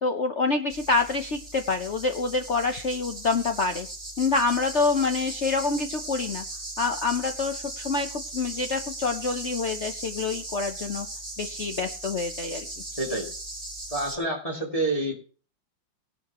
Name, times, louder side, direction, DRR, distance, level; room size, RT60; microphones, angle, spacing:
voice 1, 0.0-3.9 4.2-6.4 6.8-8.1 8.3-11.1 11.4-12.6, left 4 dB, 55° left, 6 dB, 0.8 m, -26 dB
sound 1, 0.7-14.2, right 2 dB, 25° right, 6.4 m, -38 dB
voice 2, 12.9-13.3 13.9-15.1, right 2 dB, 15° left, -2 dB, 2.7 m, -28 dB
18.5 x 11.5 x 3.0 m, 0.40 s
omnidirectional pair, 2.3 m